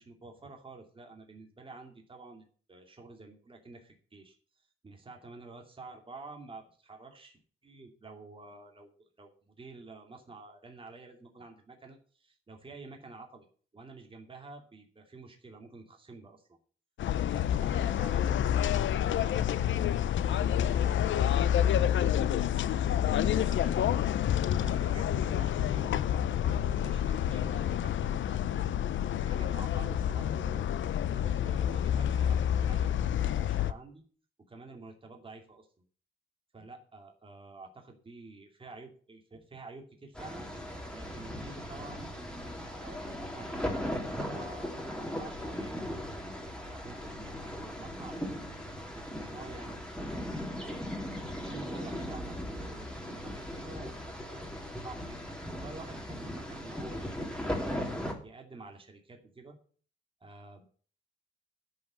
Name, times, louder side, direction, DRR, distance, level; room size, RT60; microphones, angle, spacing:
voice 1, 0.0-13.5 13.7-16.5 17.3-19.9 20.3-21.4 21.8-24.0 24.6-25.9 26.4-28.6 29.1-30.7 31.1-34.0 34.5-35.7 36.5-40.5 40.9-46.2 46.7-48.5 48.9-49.8 50.2-50.8 51.4-55.2 55.5-57.3 58.0-59.6 60.2-60.6, right 3 dB, 25° right, 2 dB, 2.5 m, -49 dB
sound 1, 17.0-33.7, left 10 dB, 65° left, 0.7 m, -28 dB
sound 2, 40.1-58.1, left 1 dB, 5° left, 3.0 m, -38 dB
10.5 x 5.7 x 8.4 m, 0.43 s
cardioid pair, 100°, 21 cm